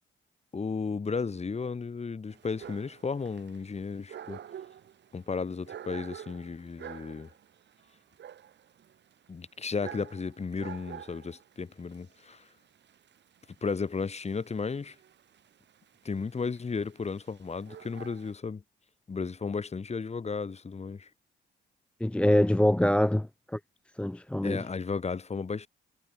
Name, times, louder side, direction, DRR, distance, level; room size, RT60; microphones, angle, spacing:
voice 1, 0.5-4.4 5.1-7.3 9.3-12.5 13.6-15.0 16.0-18.6 19.1-21.1 24.4-25.7, left 5 dB, 35° left, 4.5 m, -34 dB
Dog, 2.3-18.3, right 9 dB, 65° right, 5.4 m, -48 dB
voice 2, 22.0-23.6 24.0-24.6, left 1 dB, 5° left, 0.6 m, -25 dB
cardioid pair, 90°, 20 cm